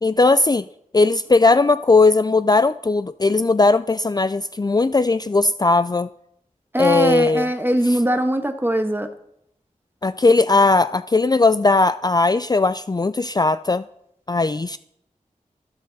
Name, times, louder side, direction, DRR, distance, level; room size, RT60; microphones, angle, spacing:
voice 1, 0.0-0.7 0.9-6.1 6.8-7.5 7.8-8.0 10.0-13.8 14.3-14.8, left 3 dB, 30° left, 13 dB, 0.4 m, -18 dB
voice 2, 6.7-9.1, right 1 dB, 15° right, 6 dB, 1.3 m, -21 dB
14.0 x 13.0 x 4.1 m, 0.75 s
wide cardioid pair, 70°, 14 cm